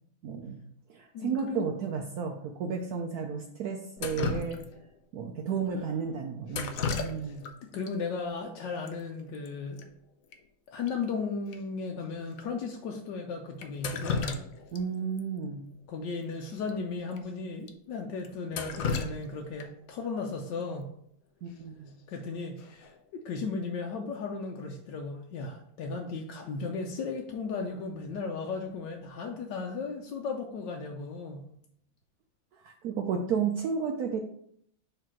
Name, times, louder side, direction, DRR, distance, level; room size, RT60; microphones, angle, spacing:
voice 1, 0.2-0.6 0.9-4.6 5.1-7.4 14.7-15.7 21.4-21.9 32.5-34.2, right 6 dB, 85° right, 2 dB, 0.8 m, -33 dB
voice 2, 1.1-1.7 7.6-9.9 10.7-14.4 15.9-20.9 22.1-31.5, left 4 dB, 70° left, 1 dB, 1.2 m, -35 dB
Drip, 4.0-5.0 6.5-7.5 7.8-7.9 8.9-9.0 9.2-9.5 9.8-9.9 10.3-10.4 10.9-11.0 11.5-11.6 12.3-12.4 13.6-14.8 15.2-15.3 16.6-16.7 17.1-17.2 17.7-17.8 18.2-19.9 21.9-22.2 22.6-23.0, left 5 dB, 85° left, 0.7 m, -34 dB
6.7 x 3.4 x 4.4 m, 0.68 s
omnidirectional pair, 2.3 m